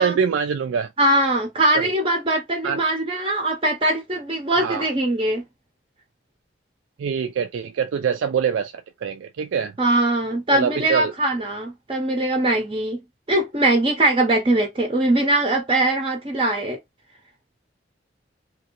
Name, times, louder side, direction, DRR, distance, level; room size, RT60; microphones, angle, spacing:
voice 1, 0.0-0.9 1.7-1.9 2.6-2.8 4.5-4.9 7.0-8.7 9.0-9.7 10.5-11.1, right 7 dB, 90° right, 0.3 m, -24 dB
voice 2, 1.0-5.4 9.8-13.0 13.3-16.8, right 1 dB, 30° right, 0.5 m, -21 dB
2.9 x 2.6 x 2.8 m
head